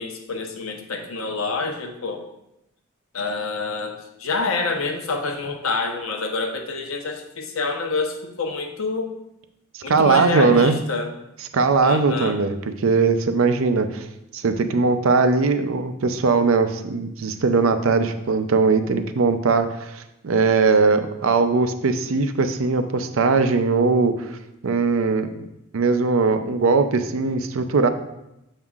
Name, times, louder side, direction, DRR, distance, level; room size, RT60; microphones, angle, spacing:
voice 1, 0.0-2.2 3.1-9.1 9.8-11.1 11.8-12.4, left 3 dB, 85° left, 4 dB, 0.8 m, -27 dB
voice 2, 9.9-10.8 11.5-14.1 14.3-24.4 24.6-25.5 25.7-27.9, right 4 dB, 75° right, 9 dB, 0.5 m, -20 dB
7.2 x 5.5 x 2.4 m, 0.87 s
head